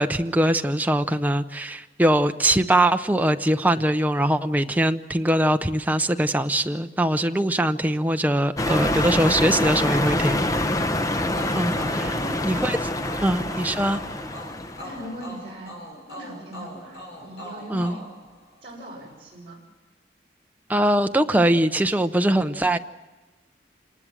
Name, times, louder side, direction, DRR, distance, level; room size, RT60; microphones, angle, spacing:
voice 1, 0.0-10.5 11.5-12.1 12.4-12.9 13.2-14.0 17.7-18.0 20.7-22.8, right 1 dB, 10° right, 7 dB, 0.7 m, -22 dB
sound 1, 8.6-15.1, left 1 dB, 20° left, 0.8 m, -26 dB
sound 2, 11.3-18.9, equal, 65° left, 6.7 m, -41 dB
voice 2, 11.9-12.3 14.8-15.7 16.1-18.0 18.6-19.6, equal, 30° right, -2 dB, 6.4 m, -40 dB
27.0 x 19.5 x 7.5 m, 1.2 s
head